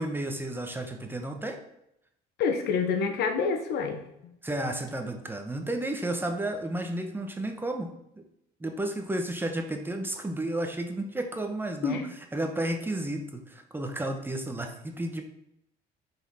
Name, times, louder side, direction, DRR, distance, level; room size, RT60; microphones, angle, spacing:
voice 1, 0.0-1.6 4.4-8.2 8.6-12.0 12.3-15.2, right 1 dB, 10° right, 4 dB, 1.0 m, -32 dB
voice 2, 2.4-4.4 11.8-12.0, left 5 dB, 75° left, 6 dB, 1.2 m, -28 dB
5.9 x 4.5 x 5.5 m, 0.79 s
cardioid pair, 110°, 17 cm